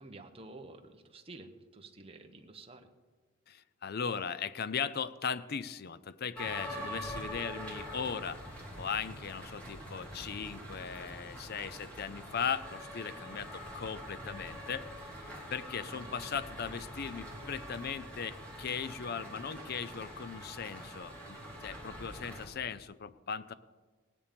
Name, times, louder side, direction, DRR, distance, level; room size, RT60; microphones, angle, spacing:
voice 1, 0.0-2.9 6.7-7.0 15.8-16.4, right 2 dB, 30° right, 5 dB, 1.0 m, -51 dB
voice 2, 3.5-15.2 15.5-23.5, left 6 dB, 50° left, 15 dB, 0.5 m, -38 dB
sound 1, 6.3-22.4, equal, 5° left, 3.2 m, -45 dB
18.0 x 9.8 x 5.2 m, 1.4 s
head